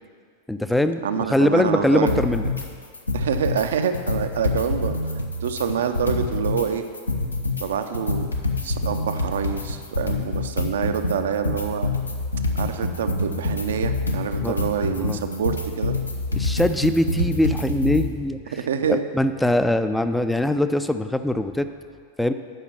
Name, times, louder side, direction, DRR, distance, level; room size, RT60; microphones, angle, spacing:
voice 1, 0.5-2.5 14.4-14.6 15.0-15.2 16.3-18.4 18.9-21.7 22.2-22.3, left 1 dB, 5° left, 9 dB, 0.4 m, -22 dB
voice 2, 1.0-2.2 3.1-6.8 7.6-8.3 8.6-11.9 12.5-16.0 18.5-19.1, right 7 dB, 60° right, 8 dB, 0.5 m, -26 dB
sound 1, 2.1-2.7 2.9-3.7 3.9-6.7 6.9-18.1, left 2 dB, 80° left, 0.8 m, -26 dB
8.1 x 5.7 x 6.0 m, 2.1 s
figure-of-eight pair, 90°, 0 cm